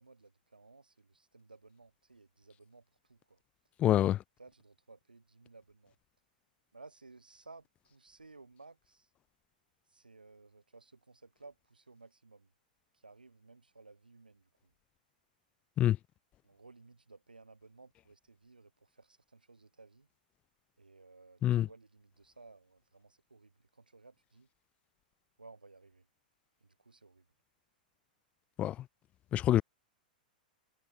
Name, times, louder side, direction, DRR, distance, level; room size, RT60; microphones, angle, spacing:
voice 1, 0.0-3.4 4.4-6.0 6.7-9.1 9.9-12.5 12.9-14.7 16.4-20.1 20.8-24.5 25.4-26.1 26.6-27.3, right 3 dB, 85° right, 5.0 m, -58 dB
voice 2, 3.8-4.2 15.8-16.0 21.4-21.7 28.6-28.8 29.3-29.6, left 12 dB, 25° left, 0.4 m, -26 dB
figure-of-eight pair, 100°, 5 cm